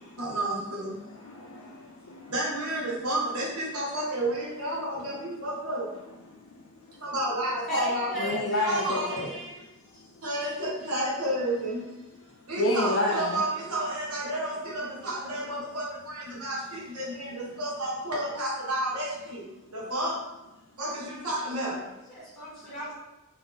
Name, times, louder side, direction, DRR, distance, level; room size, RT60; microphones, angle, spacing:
voice 1, 0.2-1.0 2.3-6.0 7.0-9.2 10.2-11.9 12.5-20.3 20.8-21.9, right 1 dB, 85° right, -4 dB, 1.3 m, -31 dB
voice 2, 1.0-2.3 6.5-6.6 8.2-9.3 12.6-13.4, left 2 dB, 60° left, -2 dB, 0.4 m, -30 dB
voice 3, 7.7-9.6 9.9-10.0 22.1-22.9, equal, ahead, -7 dB, 0.9 m, -36 dB
4.0 x 2.6 x 3.5 m, 1.0 s
head